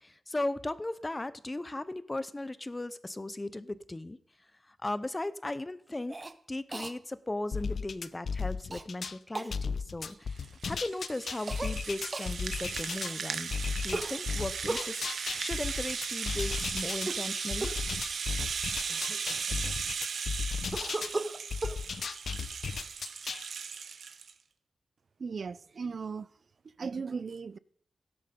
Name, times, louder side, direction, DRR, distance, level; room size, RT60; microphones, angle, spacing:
voice 1, 0.0-4.2 4.8-6.2 6.5-15.0 15.4-17.7, left 2 dB, 20° left, 0.7 m, -37 dB
Cough, 6.1-6.3 6.7-6.9 8.7-8.8 9.3-9.5 11.5-11.7 12.1-12.3 13.9-14.9 16.9-17.3 17.6-17.9 18.6-18.7 18.9-19.9 20.7-21.8, right 2 dB, 25° right, 0.9 m, -37 dB
sound 1, 7.5-9.2 9.5-13.1 13.5-17.1 17.5-21.1 21.5-23.4, left 5 dB, 65° left, 0.7 m, -35 dB
Rattle (instrument), 10.1-24.3, right 6 dB, 85° right, 1.1 m, -37 dB
voice 2, 25.2-26.3 26.8-27.6, right 5 dB, 55° right, 0.5 m, -37 dB
16.5 x 11.0 x 5.2 m
wide cardioid pair, 125°, 0 cm